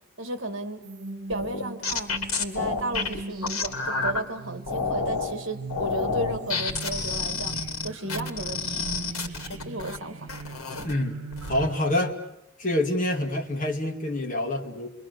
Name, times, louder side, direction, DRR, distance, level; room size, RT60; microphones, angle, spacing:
voice 1, 0.2-0.8 1.3-2.1 2.4-7.5 7.8-8.6 9.6-10.3, right 1 dB, 60° right, 7 dB, 2.0 m, -34 dB
sound 1, 0.8-12.1, right 3 dB, 80° right, 1.4 m, -39 dB
sound 2, 1.3-4.2 4.7-5.3 5.7-10.0 10.3-10.9 11.3-11.7, left 4 dB, 80° left, 2.5 m, -29 dB
voice 2, 10.8-11.2 11.5-12.2 12.6-14.9, left 1 dB, 35° left, 2 dB, 2.1 m, -26 dB
28.5 x 23.0 x 6.8 m, 0.88 s
head